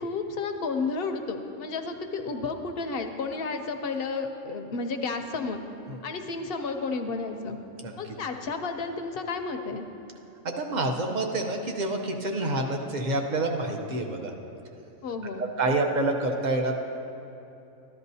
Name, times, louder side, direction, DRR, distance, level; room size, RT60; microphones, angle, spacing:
voice 1, 0.0-5.6 6.0-7.6 8.0-9.9 15.0-15.4, left 4 dB, 60° left, 5 dB, 0.7 m, -32 dB
voice 2, 10.4-14.3 15.6-16.8, right 2 dB, 45° right, 3 dB, 0.7 m, -27 dB
14.0 x 11.5 x 2.7 m, 2.9 s
omnidirectional pair, 1.4 m